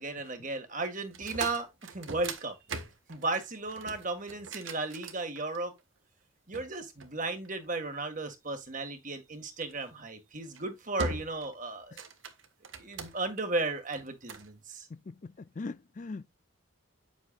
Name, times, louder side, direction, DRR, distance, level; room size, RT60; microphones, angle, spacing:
voice 1, 0.0-2.6 3.1-5.8 6.5-12.0 12.8-14.9, right 3 dB, 40° right, 1.9 m, -35 dB
sound 1, 1.1-5.8 6.5-7.8 9.6-9.9 10.4-10.6 11.0-11.5 11.8-13.4 13.9-14.5, right 3 dB, 70° right, 1.6 m, -40 dB
voice 2, 14.9-16.3, left 3 dB, 35° left, 0.4 m, -41 dB
9.6 x 8.2 x 2.5 m
head